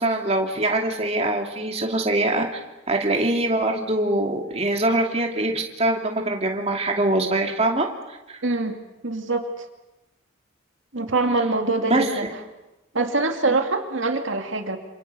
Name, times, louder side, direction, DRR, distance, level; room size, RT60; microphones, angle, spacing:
voice 1, 0.0-2.6 2.9-8.4 11.8-12.3 13.5-13.6, right 2 dB, 30° right, 1 dB, 2.6 m, -23 dB
voice 2, 8.4-8.8 9.0-9.6 10.9-12.3 12.9-14.8, right 3 dB, 70° right, 4 dB, 2.4 m, -24 dB
28.0 x 27.5 x 6.8 m, 1.0 s
head